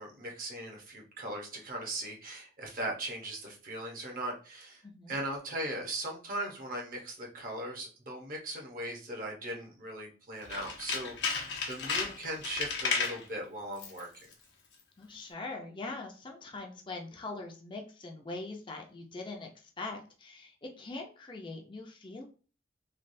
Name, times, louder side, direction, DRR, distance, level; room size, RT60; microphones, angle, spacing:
voice 1, 0.0-4.8 5.1-14.3, right 1 dB, 50° right, 0 dB, 0.9 m, -39 dB
voice 2, 4.8-5.2 15.0-22.3, left 3 dB, 30° left, 1 dB, 0.5 m, -42 dB
Tools, 10.4-13.2 13.7-14.1 14.3-14.4, left 5 dB, 80° left, 0.8 m, -33 dB
3.2 x 2.3 x 2.6 m, 0.38 s
head